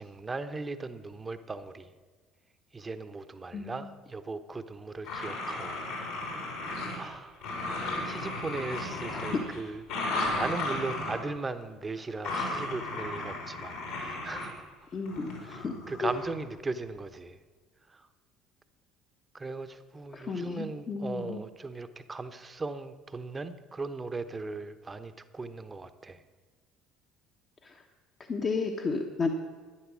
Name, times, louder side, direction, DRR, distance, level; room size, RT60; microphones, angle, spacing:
voice 1, 0.0-1.9 2.7-5.8 7.0-7.5 8.0-14.7 15.4-17.4 17.9-18.1 19.3-26.2, right 3 dB, 25° right, 11 dB, 1.0 m, -38 dB
sound 1, 5.0-7.1 7.4-11.2 12.2-14.5 15.0-16.4, left 2 dB, 75° left, 3.9 m, -35 dB
voice 2, 9.1-9.4 14.9-15.7 16.0-16.1 20.1-21.4 27.6-27.7 28.3-29.3, left 4 dB, 40° left, 2 dB, 1.1 m, -32 dB
12.0 x 10.5 x 6.2 m, 1.5 s
hypercardioid pair, 60°, 0 cm